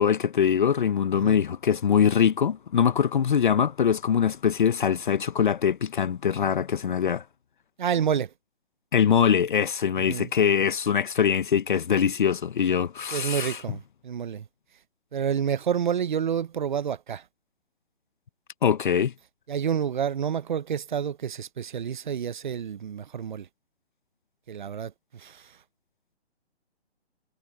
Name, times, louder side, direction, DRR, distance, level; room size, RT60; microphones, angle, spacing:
voice 1, 0.0-7.2 8.9-13.6 18.6-19.1, left 7 dB, 45° left, 1.0 m, -23 dB
voice 2, 7.8-8.3 9.9-10.3 13.1-14.4 15.1-17.2 19.5-23.5 24.5-25.4, right 8 dB, 45° right, 0.8 m, -29 dB
hypercardioid pair, 160°, 33 cm